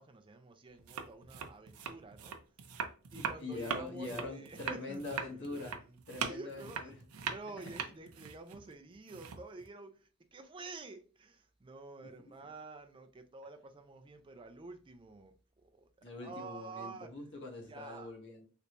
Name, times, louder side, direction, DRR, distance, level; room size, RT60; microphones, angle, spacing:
voice 1, 0.0-2.4 3.1-15.9 16.2-17.1 17.7-18.1, right 3 dB, 25° right, 0.4 m, -49 dB
sound 1, 0.8-9.7, right 6 dB, 80° right, 0.5 m, -41 dB
voice 2, 3.1-5.8 6.1-6.9 12.0-12.1 16.0-18.5, left 2 dB, 55° left, 1.0 m, -43 dB
3.3 x 2.7 x 2.9 m
head